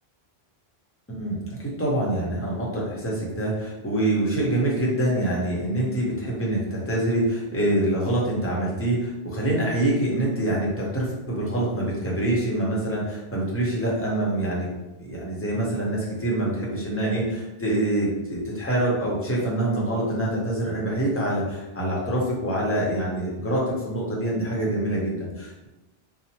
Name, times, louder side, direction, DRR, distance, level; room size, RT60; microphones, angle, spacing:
voice 1, 1.1-14.7 15.0-25.7, right 1 dB, 15° left, -5 dB, 0.6 m, -25 dB
2.9 x 2.0 x 2.8 m, 1.0 s
omnidirectional pair, 1.1 m